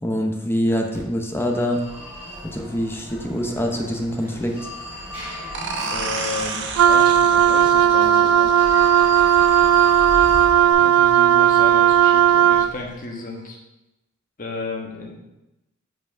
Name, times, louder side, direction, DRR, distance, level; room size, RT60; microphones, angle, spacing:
voice 1, 0.0-1.8 2.4-4.5, equal, 10° left, 2 dB, 0.7 m, -24 dB
Telephone, 0.9-10.7, left 1 dB, 10° right, 2.8 m, -35 dB
sound 1, 5.5-10.9, right 4 dB, 60° right, 0.8 m, -33 dB
voice 2, 5.9-8.5 10.8-13.6 14.4-15.2, left 2 dB, 40° left, 0 dB, 1.4 m, -33 dB
Wind instrument woodwind instrument, 6.8-12.8, right 9 dB, 85° right, 0.3 m, -15 dB
5.8 x 4.7 x 6.0 m, 0.94 s
head